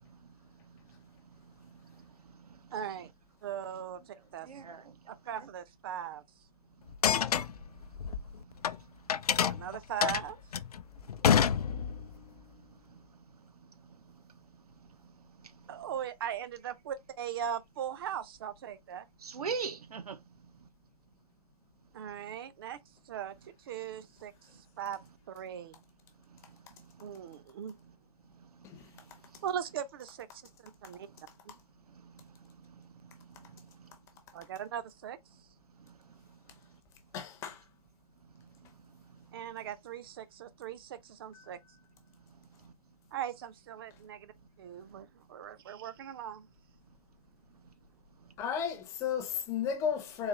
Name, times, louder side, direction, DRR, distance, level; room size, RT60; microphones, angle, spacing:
voice 1, 0.0-2.8 4.4-5.1 5.4-5.5 7.2-9.6 11.1-14.4 14.8-15.9 19.2-20.2 20.5-20.7 22.1-22.2 26.3-27.4 28.3-29.4 31.0-31.2 31.9-34.0 35.7-36.4 38.3-39.4 42.6-42.7 44.9-45.0 47.6-47.7 48.2-48.3, right 5 dB, 85° right, 0.8 m, -48 dB
voice 2, 2.7-3.1 3.4-4.5 5.1-6.2 9.4-10.4 15.7-19.1 21.9-22.8 23.1-24.3 24.8-25.0 25.3-25.8 27.0-27.8 29.4-30.4 30.8-31.1 31.5-31.6 34.3-35.2 39.3-41.6 43.1-44.3 44.6-46.5, right 9 dB, 40° right, 0.6 m, -39 dB
sound 1, 6.9-8.7 9.1-12.2, left 8 dB, 85° left, 0.5 m, -28 dB
voice 3, 37.1-37.6 41.3-41.5 48.4-50.3, left 7 dB, 15° left, 0.6 m, -34 dB
4.0 x 2.9 x 3.0 m
hypercardioid pair, 155°, 19 cm